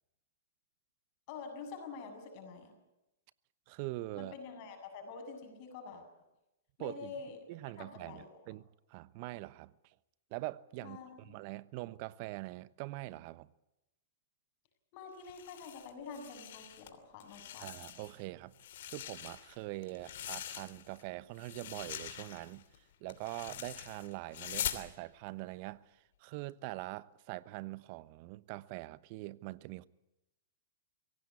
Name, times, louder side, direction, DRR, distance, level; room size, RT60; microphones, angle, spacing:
voice 1, 1.3-2.7 4.2-6.1 6.8-7.4 7.8-8.4 10.8-11.4 14.9-17.7, left 5 dB, 45° left, 7.2 m, -47 dB
voice 2, 3.7-4.3 6.8-7.1 7.5-9.9 10.3-11.0 11.3-13.5 17.6-18.5 18.9-22.6 23.0-29.9, right 19 dB, 45° right, 1.0 m, -43 dB
sound 1, 15.2-16.9 17.2-18.2 18.5-21.0 21.3-24.9, left 11 dB, 65° left, 2.9 m, -43 dB
23.5 x 17.5 x 8.5 m
hypercardioid pair, 125°, 0 cm